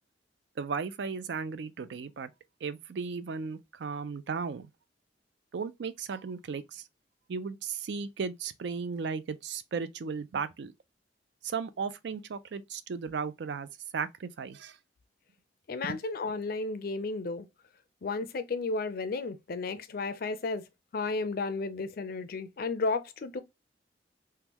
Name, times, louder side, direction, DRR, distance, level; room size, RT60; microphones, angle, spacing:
voice 1, 0.6-2.3 2.6-4.7 5.5-6.9 7.3-10.7 11.4-14.8 15.8-16.0, right 5 dB, 65° right, 0.4 m, -35 dB
voice 2, 15.7-17.5 18.0-20.6 20.9-23.4, left 3 dB, 55° left, 0.4 m, -33 dB
3.5 x 2.2 x 2.9 m
head